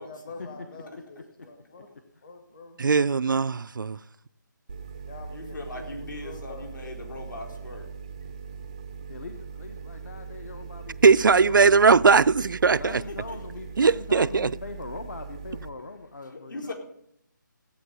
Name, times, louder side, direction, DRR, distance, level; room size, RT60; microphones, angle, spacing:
voice 1, 0.0-1.9 2.2-2.8 5.1-6.7, left 3 dB, 25° left, 1.1 m, -46 dB
voice 2, 2.8-4.0 11.0-13.0 13.8-14.5, right 5 dB, 75° right, 0.4 m, -19 dB
sound 1, 4.7-15.7, right 6 dB, 15° right, 0.5 m, -41 dB
voice 3, 5.3-7.9 13.1-13.4 16.3-16.7, left 2 dB, 70° left, 4.2 m, -39 dB
voice 4, 9.1-11.7 12.7-16.7, left 3 dB, 45° left, 1.1 m, -41 dB
16.0 x 8.4 x 6.8 m
hypercardioid pair, 175°, 11 cm